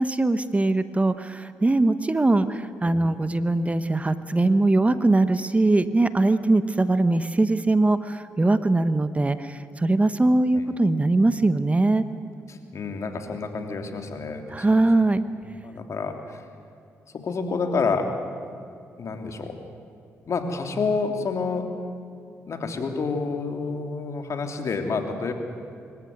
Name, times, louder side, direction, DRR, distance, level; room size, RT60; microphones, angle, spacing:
voice 1, 0.0-12.0 14.5-15.2, right 2 dB, 20° right, 12 dB, 1.1 m, -21 dB
voice 2, 12.5-14.7 15.4-16.5 17.1-18.1 19.0-19.6 20.3-21.7 22.5-25.3, left 4 dB, 55° left, 5 dB, 3.1 m, -29 dB
26.0 x 15.0 x 9.5 m, 2.5 s
supercardioid pair, 55°, 6 cm